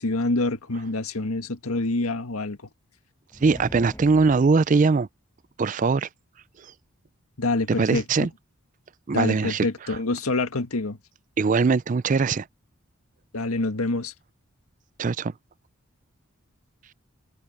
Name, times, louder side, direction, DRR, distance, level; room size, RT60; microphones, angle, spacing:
voice 1, 0.0-2.6 7.4-8.3 9.1-11.0 13.3-14.1, left 2 dB, 85° left, 1.7 m, -26 dB
sound 1, 3.3-4.9, equal, 10° left, 5.6 m, -41 dB
voice 2, 3.4-5.1 5.6-6.1 7.8-8.3 9.1-9.7 11.4-12.5 15.0-15.3, right 4 dB, 35° right, 0.4 m, -21 dB
head